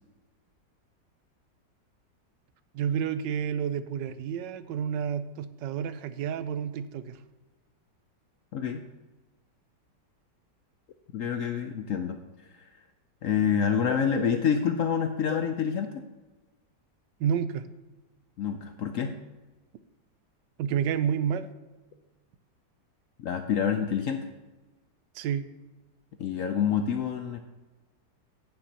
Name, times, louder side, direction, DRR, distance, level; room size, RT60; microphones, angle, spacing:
voice 1, 2.7-7.2 17.2-17.6 20.6-21.5 25.1-25.5, right 8 dB, 85° right, 13 dB, 1.3 m, -30 dB
voice 2, 11.1-12.2 13.2-15.9 18.4-19.2 23.2-24.3 26.2-27.4, left 7 dB, 70° left, 6 dB, 0.8 m, -27 dB
16.5 x 6.0 x 2.9 m, 1.2 s
omnidirectional pair, 1.9 m